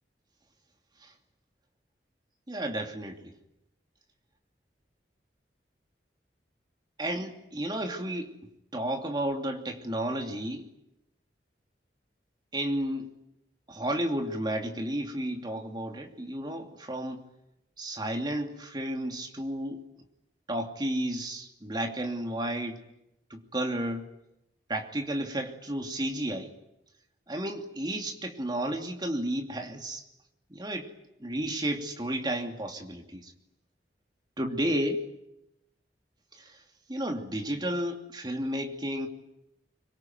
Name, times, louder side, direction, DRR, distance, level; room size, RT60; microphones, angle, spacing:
voice 1, 2.5-3.3 7.0-8.3 8.7-10.7 12.5-13.1 13.7-17.2 17.8-19.8 20.5-22.8 23.3-24.0 24.7-26.5 27.3-30.0 30.5-30.9 31.2-33.3 34.4-35.1 36.3-36.6 36.9-39.1, right 1 dB, 25° right, 3 dB, 2.9 m, -32 dB
25.0 x 23.5 x 9.3 m, 0.87 s
head